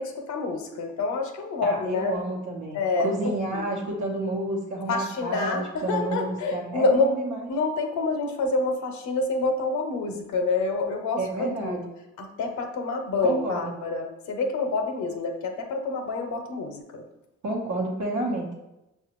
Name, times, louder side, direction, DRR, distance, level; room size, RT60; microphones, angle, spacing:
voice 1, 0.0-2.2 2.7-3.7 4.9-7.1 7.5-11.9 12.2-17.0, left 3 dB, 70° left, 5 dB, 0.6 m, -27 dB
voice 2, 1.6-7.4 11.2-11.8 13.2-13.7 17.4-18.5, right 2 dB, 80° right, -3 dB, 0.9 m, -30 dB
5.9 x 2.3 x 2.9 m, 0.93 s
cardioid pair, 90°, 30 cm